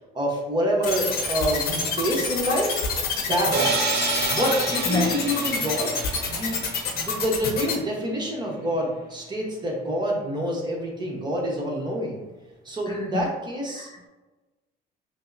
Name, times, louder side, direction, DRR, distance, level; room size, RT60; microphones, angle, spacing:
voice 1, 0.1-2.8 3.3-6.0 6.3-6.6 6.9-12.2 12.6-13.9, equal, 25° right, -1 dB, 1.0 m, -27 dB
sound 1, 0.8-7.7, left 5 dB, 60° left, 0.7 m, -27 dB
sound 2, 3.5-7.3, right 3 dB, 70° right, 0.8 m, -29 dB
voice 2, 12.9-13.3 13.7-14.1, left 3 dB, 25° left, 0 dB, 0.4 m, -28 dB
5.3 x 2.1 x 2.6 m, 1.1 s
cardioid pair, 110°, 17 cm